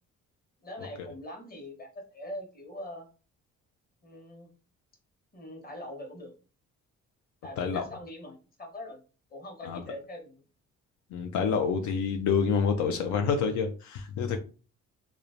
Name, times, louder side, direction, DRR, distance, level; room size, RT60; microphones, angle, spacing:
voice 1, 0.6-3.1 4.0-4.5 5.3-6.3 7.4-9.0 9.3-10.3, left 1 dB, 30° left, 1 dB, 1.0 m, -42 dB
voice 2, 11.1-14.4, left 6 dB, 80° left, 5 dB, 0.4 m, -27 dB
3.0 x 2.1 x 2.5 m, 0.35 s
cardioid pair, 90°, 30 cm